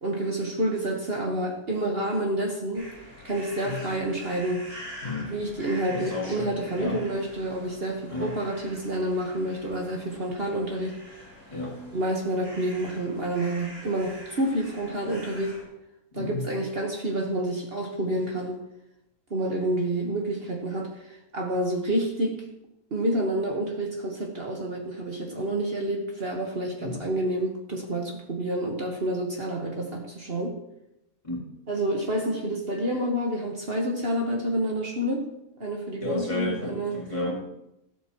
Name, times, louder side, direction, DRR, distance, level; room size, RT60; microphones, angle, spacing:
voice 1, 0.0-2.9 3.2-4.7 5.3-10.9 11.9-15.6 16.1-18.6 19.3-22.4 22.9-30.6 31.7-35.3 35.6-37.0, right 1 dB, 45° right, 1 dB, 1.4 m, -28 dB
sound 1, 2.7-15.6, equal, 65° right, 6.4 m, -45 dB
voice 2, 5.0-5.3 5.9-7.1 8.1-8.3 11.5-11.8 16.1-16.4 26.8-27.0 31.2-31.4 36.0-37.5, left 2 dB, 20° left, -3 dB, 2.3 m, -32 dB
15.0 x 12.5 x 3.0 m, 0.85 s
omnidirectional pair, 1.5 m